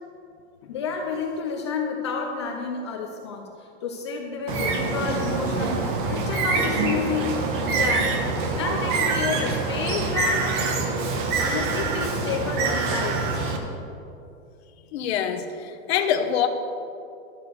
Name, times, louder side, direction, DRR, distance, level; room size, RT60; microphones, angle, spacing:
voice 1, 0.6-3.5 3.8-7.5 7.7-10.6 11.3-13.4, left 5 dB, 25° left, 2 dB, 0.4 m, -30 dB
Bird, 4.5-13.6, right 4 dB, 40° right, 1.1 m, -25 dB
voice 2, 14.9-15.4 15.9-16.5, left 9 dB, 55° left, 6 dB, 0.9 m, -23 dB
11.0 x 6.5 x 6.8 m, 2.6 s
supercardioid pair, 175°, 38 cm